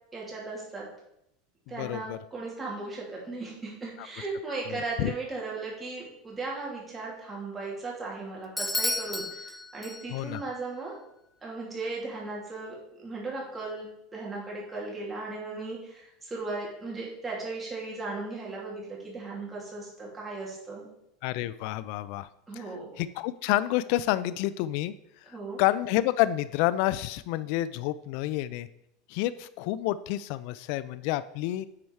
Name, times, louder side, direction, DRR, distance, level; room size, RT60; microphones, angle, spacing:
voice 1, 0.1-0.9 1.7-11.0 11.4-13.9 14.1-20.9 22.5-22.9 25.3-25.6, right 3 dB, 15° right, -4 dB, 3.0 m, -37 dB
voice 2, 1.8-2.2 4.7-5.1 10.1-10.4 21.2-22.3 22.6-22.7 23.0-24.9 25.6-28.7 29.1-31.7, left 15 dB, 65° left, 16 dB, 0.3 m, -29 dB
Bell / Doorbell, 8.6-10.4, left 2 dB, 5° left, 0.5 m, -32 dB
9.6 x 4.5 x 4.8 m, 0.80 s
supercardioid pair, 120°, 0 cm